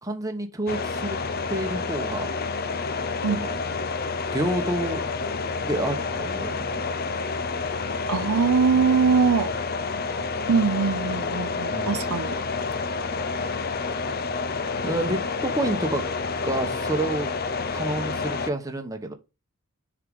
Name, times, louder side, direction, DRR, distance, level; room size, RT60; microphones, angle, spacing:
voice 1, 0.0-1.2 1.5-2.3 3.3-3.6 4.3-5.0 5.6-6.7 11.7-12.0 14.8-16.0 16.4-17.3 17.7-19.1, right 1 dB, 15° right, 1.1 m, -28 dB
sound 1, 0.7-18.5, left 4 dB, 45° left, 0.6 m, -29 dB
voice 2, 8.1-9.5 10.5-12.4, right 5 dB, 85° right, 0.6 m, -22 dB
6.7 x 4.8 x 3.9 m
head